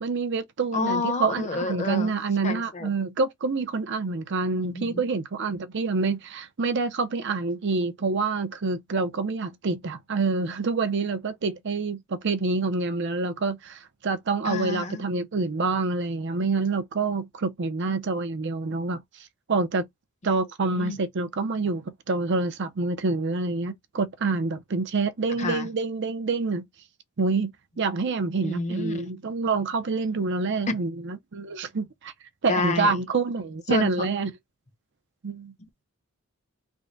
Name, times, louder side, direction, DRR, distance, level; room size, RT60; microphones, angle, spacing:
voice 1, 0.0-19.9 20.2-26.6 27.2-32.1 32.4-34.3 35.2-35.5, right 3 dB, 55° right, 0.6 m, -27 dB
voice 2, 0.7-2.2 2.4-2.9 4.5-5.0 14.4-15.0 20.7-21.0 25.4-25.7 28.4-29.1 30.7-30.8 32.5-32.9 33.7-33.9 35.6-35.8, left 3 dB, 35° left, 0.8 m, -29 dB
3.5 x 2.1 x 3.8 m
head